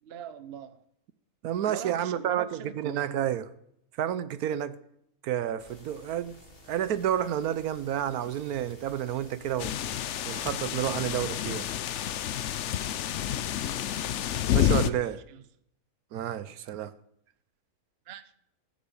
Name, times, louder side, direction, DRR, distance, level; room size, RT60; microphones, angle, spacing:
voice 1, 0.0-0.8 1.7-3.0 15.3-15.4 16.5-16.6 18.1-18.4, right 9 dB, 50° right, 0.9 m, -41 dB
voice 2, 1.4-3.5 4.0-4.8 5.2-6.4 6.7-9.7 10.2-11.7 14.5-15.2 16.1-16.9, right 10 dB, 80° right, 1.2 m, -30 dB
sound 1, 5.6-11.3, left 2 dB, 40° left, 2.0 m, -53 dB
sound 2, 9.6-14.9, left 11 dB, 60° left, 0.8 m, -29 dB
14.5 x 8.8 x 7.1 m
omnidirectional pair, 1.6 m